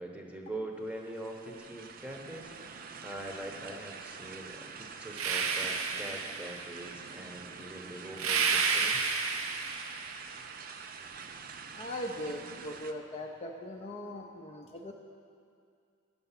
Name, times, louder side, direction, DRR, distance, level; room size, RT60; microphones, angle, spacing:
voice 1, 0.0-2.5 3.0-9.1, right 1 dB, 5° right, 1 dB, 0.9 m, -43 dB
sound 1, 0.8-12.9, right 5 dB, 45° right, 0.5 m, -46 dB
sound 2, 5.1-6.8 8.2-10.2, right 5 dB, 90° right, 0.7 m, -31 dB
voice 2, 11.8-14.9, left 1 dB, 30° left, 1 dB, 0.5 m, -40 dB
10.5 x 6.9 x 5.7 m, 2.4 s
head